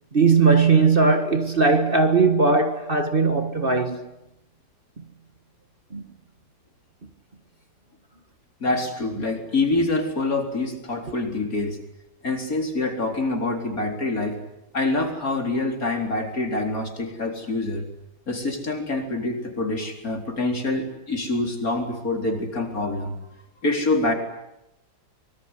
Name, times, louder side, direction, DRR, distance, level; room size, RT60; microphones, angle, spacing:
voice 1, 0.1-4.0 5.9-6.0, right 4 dB, 35° right, 1.8 m, -19 dB
voice 2, 8.6-11.8 12.2-14.4 14.7-17.9 18.3-23.2 23.6-24.1, left 2 dB, 55° left, 4.4 m, -26 dB
25.0 x 23.0 x 9.9 m
omnidirectional pair, 1.8 m